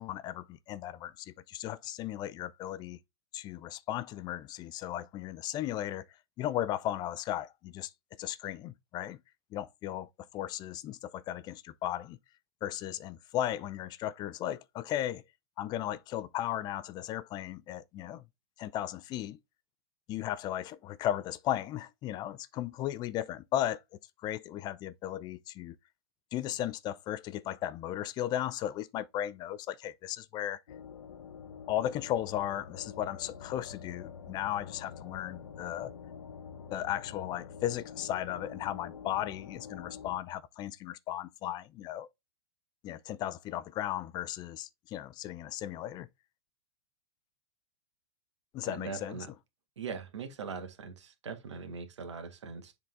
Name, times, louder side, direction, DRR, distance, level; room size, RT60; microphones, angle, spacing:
voice 1, 0.0-3.0 3.3-6.1 6.4-7.9 8.2-9.2 9.5-12.2 12.6-15.2 15.6-18.2 18.6-19.4 20.1-23.8 24.2-25.8 26.3-30.6 31.7-35.9 36.7-42.1 42.8-46.1 48.5-49.4, left 12 dB, 30° left, 0.4 m, -36 dB
sound 1, 30.7-40.2, left 6 dB, 80° left, 0.9 m, -47 dB
voice 2, 48.7-49.3 49.8-52.7, right 5 dB, 85° right, 1.7 m, -41 dB
7.4 x 3.9 x 3.4 m
hypercardioid pair, 125°, 15 cm